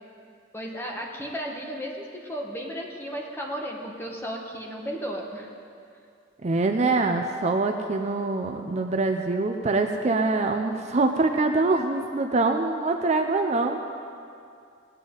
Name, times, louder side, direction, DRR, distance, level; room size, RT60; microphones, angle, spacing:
voice 1, 0.5-5.5, equal, 10° left, -1 dB, 1.4 m, -34 dB
voice 2, 6.4-13.8, right 3 dB, 35° right, 5 dB, 0.5 m, -24 dB
18.5 x 9.0 x 4.0 m, 2.4 s
head